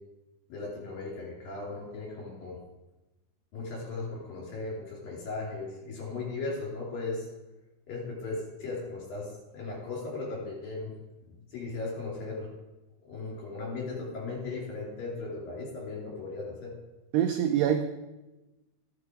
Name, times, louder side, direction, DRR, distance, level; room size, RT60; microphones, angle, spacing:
voice 1, 0.5-2.6 3.5-7.2 7.9-10.9 11.2-12.5 13.1-16.7, left 3 dB, 50° left, -3 dB, 4.9 m, -37 dB
voice 2, 17.1-17.8, right 9 dB, 90° right, 6 dB, 2.3 m, -24 dB
11.5 x 7.9 x 4.7 m, 1.0 s
omnidirectional pair, 5.5 m